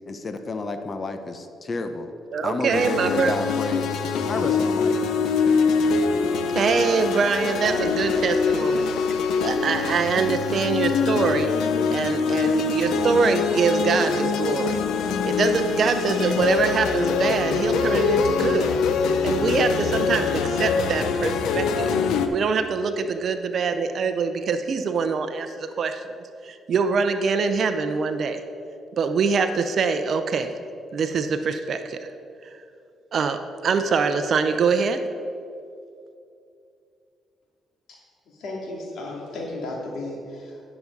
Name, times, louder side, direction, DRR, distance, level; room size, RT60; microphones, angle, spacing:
voice 1, 0.1-2.1 2.4-4.0 4.3-5.0 14.5-14.8 18.6-18.9, left 3 dB, 35° left, 8 dB, 0.8 m, -31 dB
voice 2, 2.3-3.3 6.5-8.9 9.4-11.5 11.9-14.8 15.2-18.7 19.2-21.9 22.3-26.1 26.4-28.4 29.0-30.5 30.9-32.1 32.4-32.5 33.1-35.0, right 5 dB, 55° right, 8 dB, 0.6 m, -24 dB
sound 1, 2.7-22.3, left 5 dB, 85° left, 0.6 m, -24 dB
voice 3, 38.3-40.7, left 2 dB, 70° left, -2 dB, 2.3 m, -34 dB
9.6 x 6.1 x 5.3 m, 2.5 s
cardioid pair, 90°, 0 cm